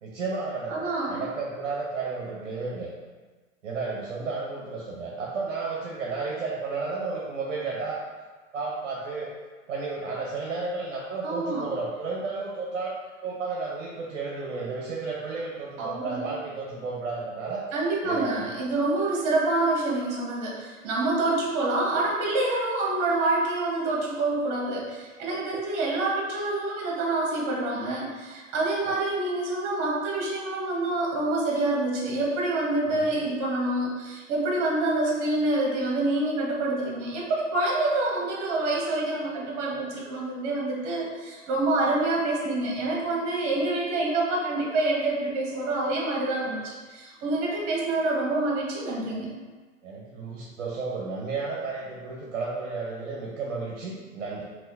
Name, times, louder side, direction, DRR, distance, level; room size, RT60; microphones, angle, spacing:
voice 1, 0.0-2.9 3.6-8.1 8.5-9.3 9.7-12.9 13.2-17.6 18.0-18.5 25.3-25.4 28.8-28.9 32.9-33.0 49.8-54.4, right 4 dB, 65° right, -4 dB, 0.9 m, -32 dB
voice 2, 0.7-1.2 11.2-11.6 15.8-16.3 17.7-49.3, right 2 dB, 40° right, -3 dB, 1.4 m, -27 dB
5.6 x 2.8 x 2.7 m, 1.4 s
figure-of-eight pair, 100°, 39 cm